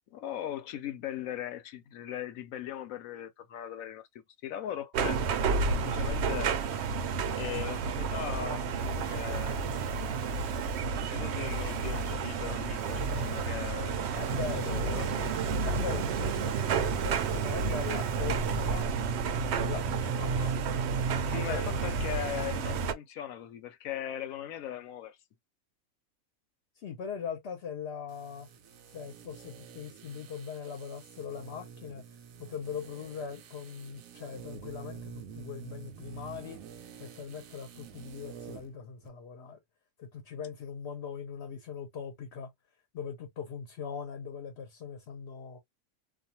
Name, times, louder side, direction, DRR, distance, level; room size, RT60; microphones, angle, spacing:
voice 1, 0.1-5.2 5.6-6.6 7.4-9.6 10.9-14.0 14.5-15.4 21.3-25.2, left 10 dB, 80° left, 1.0 m, -39 dB
sound 1, 4.9-22.9, right 5 dB, 65° right, 0.7 m, -30 dB
sound 2, 8.8-10.8 11.4-12.1 12.8-13.5 14.1-18.8, left 2 dB, 30° right, 0.6 m, -49 dB
voice 2, 14.2-14.8 15.6-18.9 19.6-20.7 21.5-21.6 26.8-28.5 28.9-32.0 32.4-36.6 37.0-39.6 40.0-42.5 42.9-45.6, left 6 dB, 60° left, 0.9 m, -40 dB
sound 3, 28.1-38.8 39.0-39.1, right 7 dB, 85° right, 1.0 m, -48 dB
2.4 x 2.3 x 2.7 m
omnidirectional pair, 1.4 m